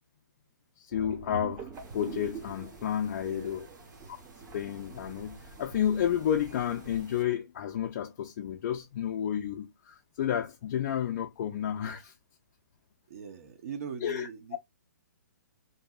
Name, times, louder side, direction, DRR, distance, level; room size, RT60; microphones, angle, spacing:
voice 1, 0.8-3.7 4.1-4.2 4.5-12.1 14.0-14.6, left 9 dB, 45° left, 0.4 m, -31 dB
sound 1, 0.9-7.0, right 6 dB, 20° right, 0.5 m, -45 dB
sound 2, 1.7-7.2, right 1 dB, 85° right, 1.1 m, -55 dB
voice 2, 3.0-4.2 13.1-14.6, right 7 dB, 50° right, 0.7 m, -43 dB
2.7 x 2.6 x 2.3 m
hypercardioid pair, 145°, 10 cm